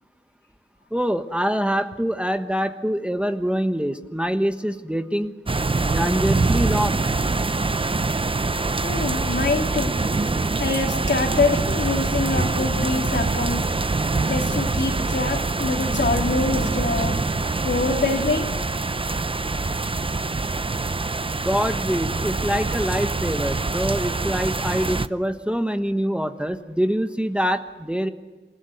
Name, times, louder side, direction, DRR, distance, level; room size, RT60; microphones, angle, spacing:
voice 1, 0.9-5.3 5.9-7.1 9.9-10.0 12.4-12.7 21.4-28.1, equal, 5° right, 7 dB, 1.2 m, -25 dB
sound 1, 5.5-25.1, right 3 dB, 25° right, 0.7 m, -24 dB
voice 2, 8.8-10.0 10.6-13.6 14.3-17.2 17.6-18.5, left 3 dB, 65° left, 2 dB, 3.4 m, -25 dB
27.5 x 15.5 x 9.4 m, 1.3 s
wide cardioid pair, 70°, 20 cm